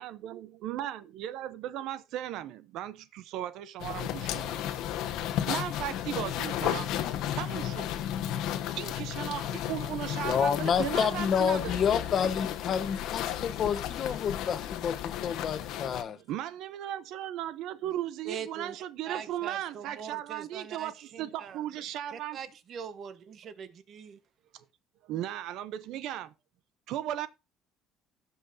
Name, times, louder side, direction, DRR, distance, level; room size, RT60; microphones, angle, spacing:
voice 1, 0.0-4.8 5.4-6.9 7.3-7.9 8.3-11.8 16.1-22.4 24.5-24.6 25.0-26.3 26.9-27.3, right 12 dB, 65° right, 0.6 m, -36 dB
sound 1, 3.8-16.0, left 11 dB, 70° left, 1.1 m, -33 dB
voice 2, 10.2-16.2, left 7 dB, 40° left, 0.9 m, -29 dB
voice 3, 18.2-18.8 19.0-21.6 22.1-24.2, right 7 dB, 45° right, 1.1 m, -42 dB
16.5 x 5.6 x 2.6 m
cardioid pair, 135°, 0 cm